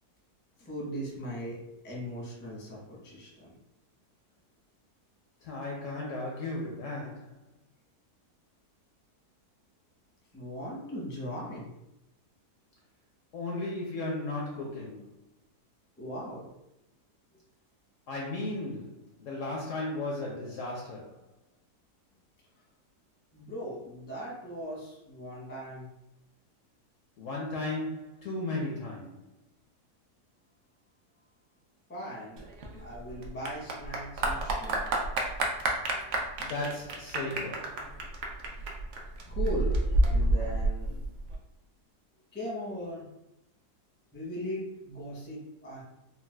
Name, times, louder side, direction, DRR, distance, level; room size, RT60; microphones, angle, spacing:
voice 1, 0.6-3.6 10.3-11.7 16.0-16.5 23.3-25.9 31.9-32.4 32.8-34.9 39.3-40.9 42.3-43.1 44.1-45.8, equal, 15° left, -5 dB, 0.5 m, -39 dB
voice 2, 5.4-7.3 13.3-15.1 18.1-21.2 27.2-29.2 36.4-37.8, left 2 dB, 70° left, -2 dB, 0.8 m, -35 dB
Clapping / Applause, 32.4-41.4, right 2 dB, 70° right, 0.7 m, -29 dB
3.9 x 2.2 x 2.2 m, 0.85 s
omnidirectional pair, 1.7 m